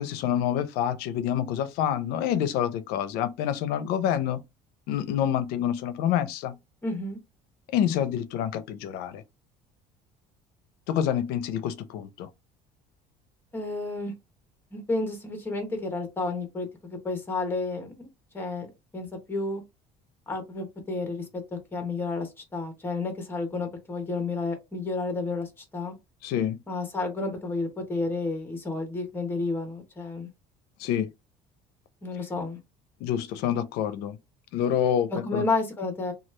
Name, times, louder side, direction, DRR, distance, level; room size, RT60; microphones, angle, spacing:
voice 1, 0.0-4.4 4.9-6.5 7.7-9.2 10.9-12.3 26.2-26.6 30.8-31.1 33.0-34.2 34.5-35.4, left 10 dB, 75° left, 0.5 m, -27 dB
voice 2, 6.8-7.2 13.5-14.1 14.7-18.1 18.3-18.7 18.9-19.6 20.3-21.4 21.7-25.9 26.7-30.3 32.0-32.6 35.1-36.1, left 3 dB, 15° left, 1.0 m, -31 dB
3.0 x 2.3 x 3.1 m
cardioid pair, 150°, 16 cm